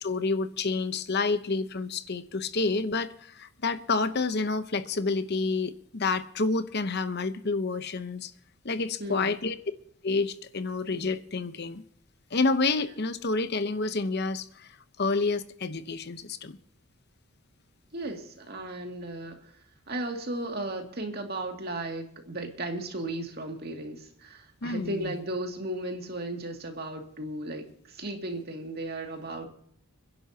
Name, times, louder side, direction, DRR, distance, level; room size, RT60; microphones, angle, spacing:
voice 1, 0.0-8.3 8.6-9.6 10.0-11.8 12.3-14.7 15.0-16.6 24.6-25.1, left 3 dB, 50° left, 0.9 m, -29 dB
voice 2, 9.0-9.3 17.9-19.5 19.9-29.5, right 1 dB, 45° right, 2.3 m, -35 dB
29.5 x 11.0 x 2.9 m
head